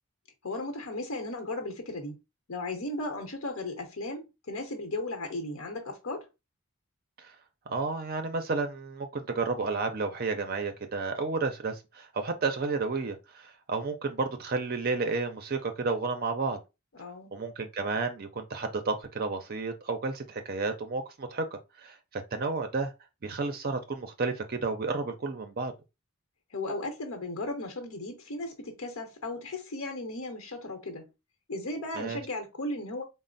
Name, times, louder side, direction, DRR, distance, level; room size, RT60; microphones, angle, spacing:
voice 1, 0.4-2.2 2.5-6.3 16.9-17.3 26.5-31.1 31.5-33.0, left 2 dB, 65° left, 0.9 m, -36 dB
voice 2, 7.7-16.6 17.3-22.9 23.2-25.7 32.0-32.2, right 4 dB, 45° right, 0.5 m, -32 dB
4.2 x 2.0 x 3.8 m
head